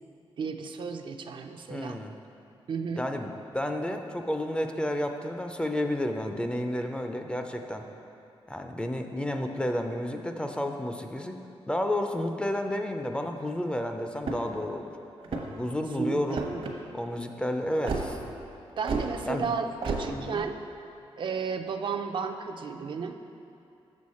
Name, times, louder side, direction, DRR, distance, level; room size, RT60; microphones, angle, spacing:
voice 1, 0.4-2.0 2.7-3.1 16.0-16.7 18.8-20.6 21.2-23.1, right 5 dB, 55° right, 5 dB, 0.4 m, -33 dB
voice 2, 1.7-2.1 3.0-7.9 8.5-11.4 11.7-14.9 15.3-16.4 16.9-18.2 19.3-19.5 20.1-20.4, left 1 dB, 10° left, 4 dB, 0.4 m, -31 dB
sound 1, 14.2-14.6 15.2-15.7 16.3-16.7 17.8-18.1 18.8-19.1 19.8-20.0, right 4 dB, 70° right, 0.9 m, -31 dB
6.9 x 6.3 x 4.2 m, 2.6 s
wide cardioid pair, 115°, 10 cm